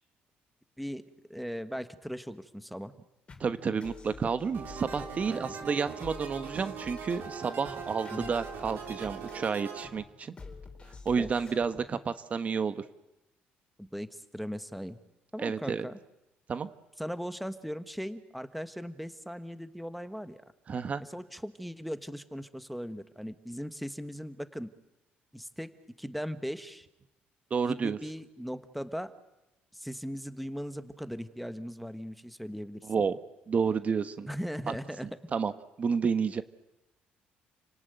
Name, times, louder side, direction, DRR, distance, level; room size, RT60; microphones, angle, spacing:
voice 1, 1.3-2.9 5.3-5.5 8.1-8.3 11.1-11.4 13.8-15.0 15.3-16.0 17.0-20.4 21.0-24.7 25.3-25.7 26.0-26.9 27.6-29.1 29.7-32.9 34.3-35.1, equal, ahead, 11 dB, 1.4 m, -38 dB
sound 1, 3.3-12.0, left 4 dB, 25° left, 4.4 m, -48 dB
voice 2, 3.4-10.3 11.0-12.8 15.4-15.9 16.5-16.7 20.7-21.0 27.5-28.0 32.9-33.2 33.5-34.3 34.7-34.8 35.3-35.5 35.8-36.4, right 5 dB, 40° right, 11 dB, 1.2 m, -30 dB
sound 2, 4.5-9.9, right 6 dB, 65° right, 4.7 m, -41 dB
29.5 x 18.0 x 9.3 m, 0.93 s
cardioid pair, 105°, 4 cm